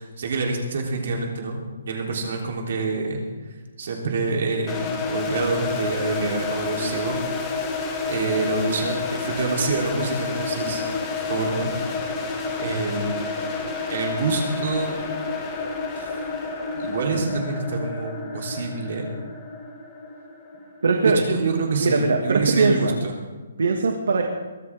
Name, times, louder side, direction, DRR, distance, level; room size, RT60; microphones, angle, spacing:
voice 1, 0.0-1.6 1.9-3.3 3.8-7.2 8.1-10.8 11.3-11.7 12.6-13.4 13.9-15.0 15.9-16.3 16.7-19.0 21.0-23.1, right 3 dB, 45° right, 0 dB, 3.4 m, -26 dB
sound 1, 4.7-21.5, left 4 dB, 15° left, 1.5 m, -30 dB
voice 2, 20.8-21.2 21.8-23.0 23.6-24.2, right 4 dB, 80° right, 3 dB, 2.0 m, -21 dB
23.0 x 14.0 x 3.7 m, 1.3 s
hypercardioid pair, 180°, 0 cm